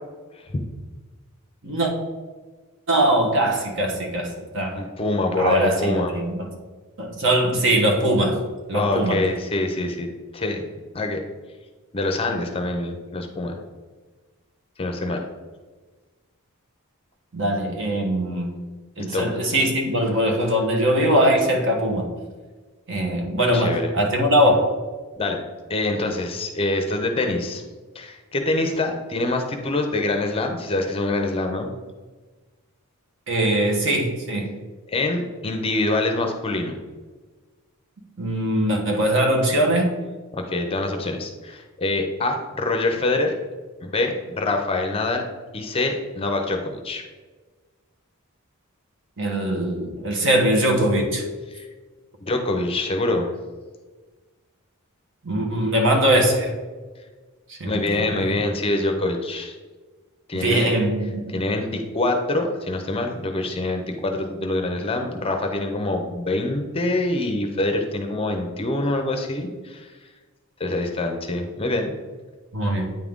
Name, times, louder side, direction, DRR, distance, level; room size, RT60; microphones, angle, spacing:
voice 1, 2.9-4.8 5.4-6.5 7.0-8.4 8.7-9.2 17.3-18.5 19.0-22.1 22.9-24.7 33.3-34.5 38.2-40.0 49.2-51.2 55.2-56.5 57.5-58.4 60.3-61.2 72.5-72.9, right 1 dB, 55° right, 1 dB, 1.2 m, -21 dB
voice 2, 4.8-6.1 8.7-10.6 10.9-11.2 11.9-13.6 14.8-15.2 19.0-19.3 23.5-23.9 25.2-25.4 25.7-27.6 27.9-31.7 34.9-36.8 40.3-43.3 43.8-45.2 45.5-47.0 51.5-51.7 52.2-53.3 57.6-59.5 60.3-60.7 61.3-69.9 70.6-71.9, left 2 dB, 25° left, 4 dB, 0.6 m, -25 dB
9.0 x 3.7 x 3.6 m, 1.4 s
head